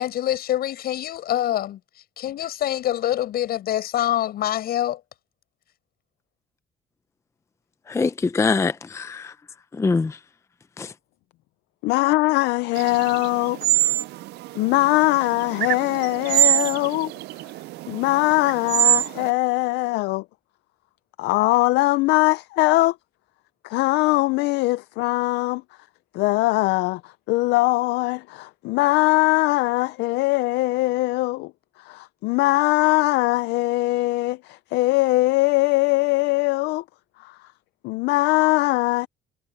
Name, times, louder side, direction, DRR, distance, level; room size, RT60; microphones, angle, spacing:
voice 1, 0.0-1.8 2.2-5.0, left 12 dB, 65° left, 7.1 m, -25 dB
voice 2, 7.9-9.3 9.7-10.2 10.8-10.9, left 4 dB, 15° left, 0.5 m, -23 dB
voice 3, 11.8-13.6 14.5-17.1 17.9-20.2 21.2-23.0 23.6-25.6 26.1-31.5 31.8-36.8 37.2-37.3 37.8-39.1, left 20 dB, 85° left, 0.5 m, -21 dB
sound 1, 12.7-19.3, right 17 dB, 75° right, 0.5 m, -24 dB
cardioid pair, 110°, 17 cm